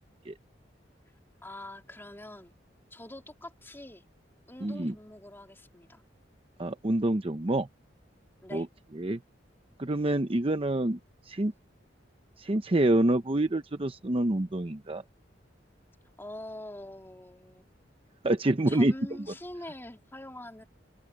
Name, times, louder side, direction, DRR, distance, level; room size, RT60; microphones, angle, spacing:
voice 1, 1.4-2.5 2.9-4.0 4.5-6.0 8.4-8.7 16.2-17.7 18.7-20.6, left 1 dB, 15° left, 3.1 m, -44 dB
voice 2, 4.6-4.9 6.6-7.7 8.5-8.7 9.0-9.2 9.8-11.0 11.3-11.5 12.4-15.0 18.2-18.9, right 1 dB, 30° right, 0.8 m, -27 dB
head